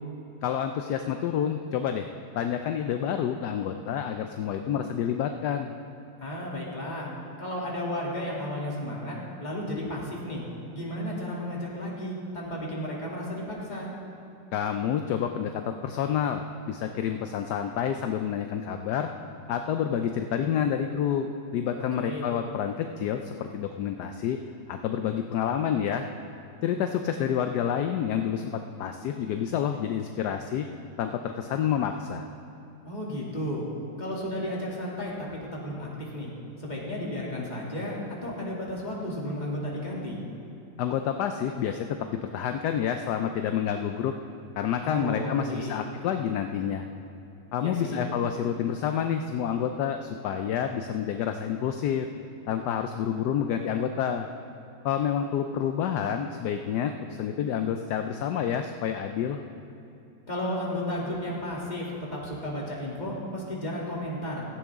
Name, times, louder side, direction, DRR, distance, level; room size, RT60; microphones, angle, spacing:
voice 1, 0.4-2.1 2.3-5.7 14.5-19.1 19.5-21.3 21.5-24.4 24.7-26.1 26.6-30.7 31.0-32.3 40.8-44.1 44.6-46.8 47.5-52.1 52.5-54.3 54.8-59.4, left 8 dB, 70° left, 6 dB, 1.1 m, -28 dB
voice 2, 6.2-7.1 7.4-10.4 10.7-13.9 21.8-22.4 32.8-33.6 34.0-35.1 35.5-36.3 36.6-37.9 38.2-40.2 44.8-45.8 47.6-48.0 60.3-64.5, left 1 dB, 25° left, -5 dB, 2.6 m, -33 dB
16.5 x 14.5 x 3.6 m, 2.9 s
omnidirectional pair, 1.9 m